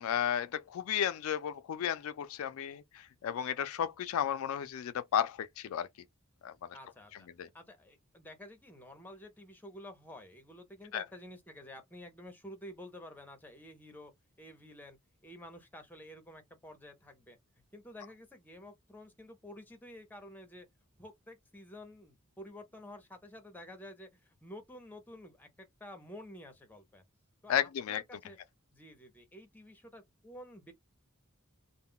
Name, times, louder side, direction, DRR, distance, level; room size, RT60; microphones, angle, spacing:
voice 1, 0.0-5.9 6.4-6.8 7.4-7.5 10.9-11.0 27.5-28.0, left 9 dB, 70° left, 0.3 m, -33 dB
voice 2, 6.7-7.3 7.5-14.1 14.4-15.0 15.2-17.4 17.7-20.7 21.0-27.0 27.4-28.4 28.7-30.7, left 1 dB, 10° left, 0.6 m, -50 dB
2.3 x 2.0 x 3.6 m
head